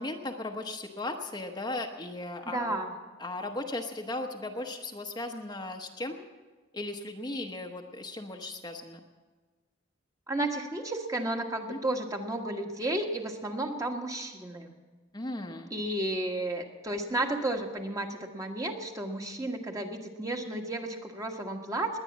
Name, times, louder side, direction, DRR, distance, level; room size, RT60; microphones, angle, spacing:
voice 1, 0.0-2.7 3.2-6.2 6.7-9.0 11.7-11.8 15.1-15.7, left 2 dB, 20° left, 3 dB, 1.0 m, -37 dB
voice 2, 2.4-2.9 10.3-14.7 15.7-22.0, right 1 dB, 15° right, 3 dB, 1.4 m, -33 dB
20.0 x 9.9 x 7.3 m, 1.3 s
head